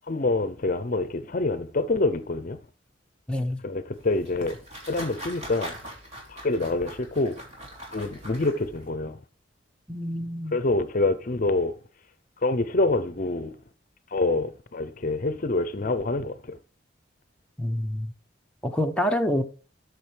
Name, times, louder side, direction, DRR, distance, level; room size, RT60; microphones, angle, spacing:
voice 1, 0.1-2.6 3.6-4.6 4.9-5.8 6.3-7.4 7.9-9.2 10.5-11.7 12.4-13.6 14.1-16.6, left 2 dB, 45° left, 0.6 m, -26 dB
voice 2, 3.3-3.6 9.9-10.6 17.6-18.1 18.6-19.4, left 1 dB, 5° left, 0.7 m, -27 dB
sound 1, 3.9-8.9, right 1 dB, 35° right, 3.5 m, -42 dB
13.0 x 6.4 x 3.3 m
head